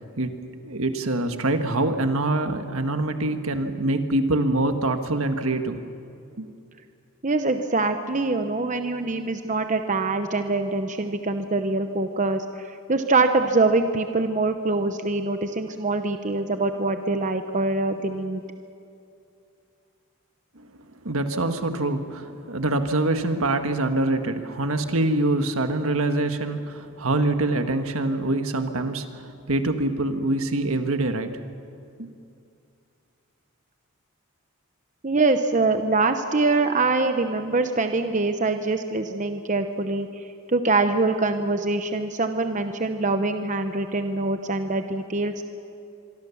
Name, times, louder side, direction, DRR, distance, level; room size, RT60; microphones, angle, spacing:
voice 1, 0.6-5.8 6.4-6.5 20.6-20.7 21.0-31.4 32.0-32.1, right 2 dB, 70° right, 7 dB, 1.6 m, -25 dB
voice 2, 7.2-18.4 35.0-40.1 40.5-45.4, right 3 dB, 35° right, 7 dB, 0.9 m, -24 dB
25.5 x 23.5 x 7.2 m, 2.5 s
head